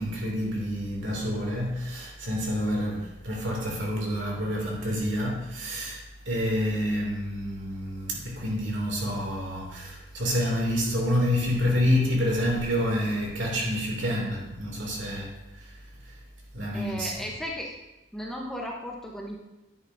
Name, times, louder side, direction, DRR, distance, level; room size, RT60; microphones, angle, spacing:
voice 1, 0.0-6.0 6.3-15.3 15.6-15.7 16.5-17.1, equal, 65° right, 2.5 m, -28 dB
voice 2, 16.7-17.7 18.1-19.4, equal, ahead, 0.8 m, -35 dB
9.9 x 9.8 x 2.6 m
head